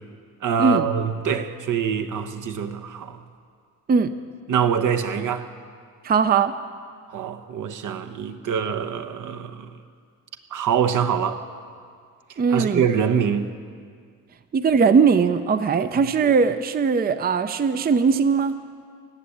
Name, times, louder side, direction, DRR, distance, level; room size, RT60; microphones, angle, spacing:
voice 1, 0.4-3.2 4.5-5.5 7.1-9.7 10.5-11.4 12.5-13.5 15.8-15.9, right 7 dB, 70° right, 1.0 m, -24 dB
voice 2, 6.0-6.5 12.4-12.8 14.5-18.6, right 5 dB, 30° right, 0.5 m, -19 dB
17.0 x 7.0 x 9.9 m
cardioid pair, 85°, 33 cm